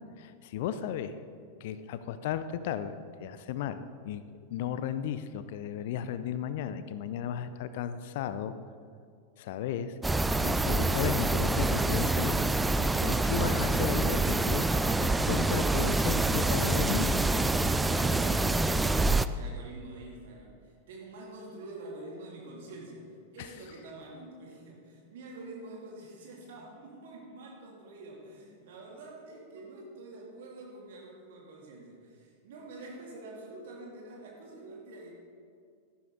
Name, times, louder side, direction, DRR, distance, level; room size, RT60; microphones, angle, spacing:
voice 1, 0.2-1.2 1.6-3.0 3.2-4.2 4.5-8.5 9.4-9.9 10.4-12.4 13.0-14.6 15.0-17.3 23.4-23.5, left 9 dB, 50° left, 12 dB, 0.5 m, -34 dB
sound 1, 10.0-19.3, right 2 dB, 10° right, 0.3 m, -26 dB
voice 2, 16.4-18.7 19.3-35.1, right 2 dB, 55° right, -2 dB, 2.8 m, -46 dB
13.0 x 11.5 x 3.9 m, 2.2 s
figure-of-eight pair, 90°, 0 cm